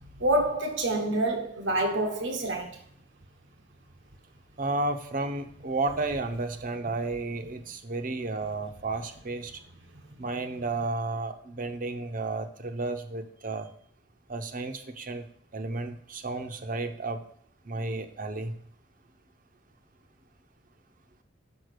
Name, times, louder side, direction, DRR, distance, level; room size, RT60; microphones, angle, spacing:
voice 1, 0.2-2.8, right 1 dB, 85° right, 1.2 m, -27 dB
voice 2, 4.6-9.6 10.2-13.7 14.3-15.3 15.5-17.2 17.6-18.5, right 2 dB, 45° right, 0.8 m, -32 dB
6.3 x 5.6 x 6.6 m
head